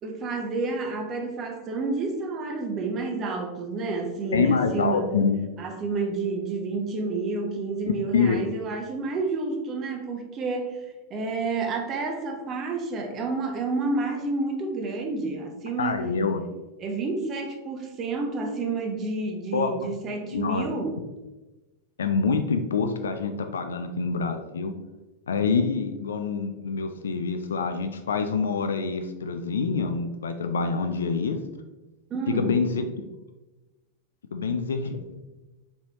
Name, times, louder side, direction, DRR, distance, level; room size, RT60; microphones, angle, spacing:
voice 1, 0.0-5.1 5.6-16.0 16.8-21.0 32.1-32.6, right 3 dB, 30° right, 4 dB, 0.8 m, -30 dB
voice 2, 4.3-5.4 8.1-8.4 15.8-16.4 19.5-19.7 20.3-20.7 22.0-24.7 25.3-31.4 32.3-32.8 34.3-35.0, left 5 dB, 65° left, 7 dB, 0.3 m, -26 dB
4.4 x 4.1 x 2.9 m, 1.1 s
figure-of-eight pair, 90°, 0 cm